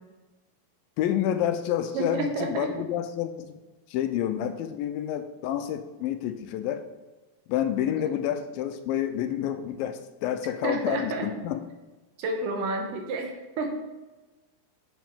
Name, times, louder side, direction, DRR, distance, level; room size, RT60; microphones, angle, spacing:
voice 1, 1.0-3.6 3.9-6.9 7.5-11.6, left 10 dB, 85° left, 9 dB, 2.3 m, -29 dB
voice 2, 1.9-2.7 10.6-11.3 12.2-13.7, right 2 dB, 70° right, 3 dB, 2.4 m, -30 dB
9.0 x 7.3 x 3.6 m, 1.1 s
omnidirectional pair, 4.2 m